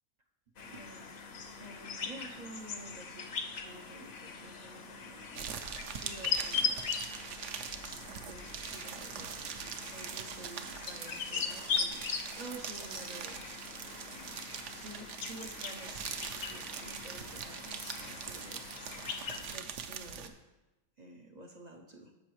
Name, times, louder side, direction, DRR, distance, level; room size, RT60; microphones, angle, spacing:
sound 1, 0.6-19.6, left 5 dB, 55° left, 0.8 m, -40 dB
voice 1, 0.7-1.2 1.6-3.3 3.6-5.4 5.9-6.9 8.1-9.6 9.8-13.5 13.8-18.6 19.5-20.4 21.0-22.1, right 2 dB, 50° right, 2 dB, 0.5 m, -50 dB
sound 2, 5.3-20.3, right 7 dB, 65° right, 0.9 m, -43 dB
10.0 x 7.0 x 3.0 m, 1.1 s
omnidirectional pair, 1.4 m